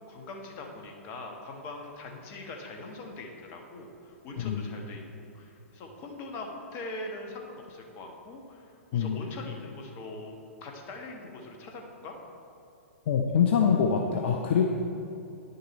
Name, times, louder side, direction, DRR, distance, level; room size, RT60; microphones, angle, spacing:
voice 1, 0.1-10.3 10.6-12.2, left 2 dB, 30° left, 2 dB, 1.2 m, -42 dB
voice 2, 13.1-14.6, left 7 dB, 50° left, 2 dB, 0.6 m, -24 dB
10.0 x 6.6 x 4.3 m, 2.7 s
figure-of-eight pair, 110°, 8 cm